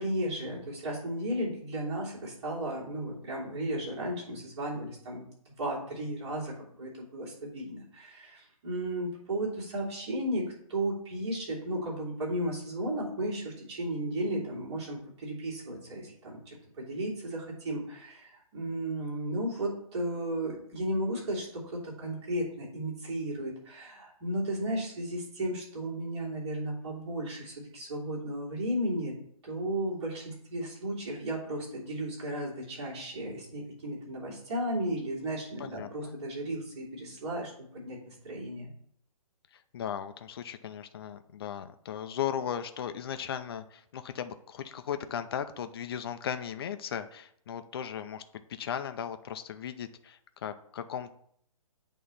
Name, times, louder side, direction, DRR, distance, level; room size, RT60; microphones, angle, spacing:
voice 1, 0.0-5.3 5.6-29.1 29.4-38.7, right 1 dB, 45° right, -5 dB, 3.0 m, -34 dB
voice 2, 35.6-36.2 39.7-48.2 48.5-51.1, left 9 dB, 40° left, 9 dB, 0.5 m, -37 dB
8.5 x 3.1 x 5.5 m, 0.66 s
hypercardioid pair, 155°, 19 cm